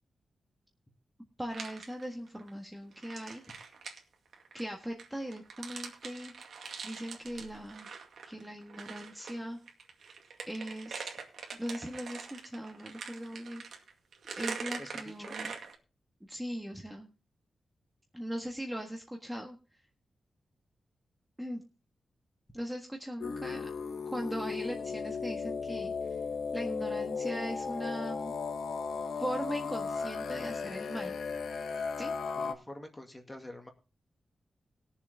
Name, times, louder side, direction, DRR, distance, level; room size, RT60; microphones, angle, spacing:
voice 1, 1.4-3.4 4.5-6.3 6.8-7.9 8.2-9.6 10.5-11.1 11.5-13.6 14.4-15.5 16.3-17.1 18.1-19.6 21.4-21.6 22.5-23.7 24.1-26.2 26.5-28.4 29.2-31.1 32.0-32.1, equal, 5° right, 1 dB, 1.5 m, -39 dB
sound 1, 1.5-2.5 2.9-9.4 9.7-15.7, right 5 dB, 80° right, 2.2 m, -44 dB
voice 2, 14.8-15.4 32.4-33.7, left 1 dB, 15° left, 4 dB, 2.2 m, -47 dB
sound 2, 23.2-32.5, left 5 dB, 90° left, 1.1 m, -36 dB
21.0 x 7.2 x 3.4 m, 0.31 s
wide cardioid pair, 135°, 0 cm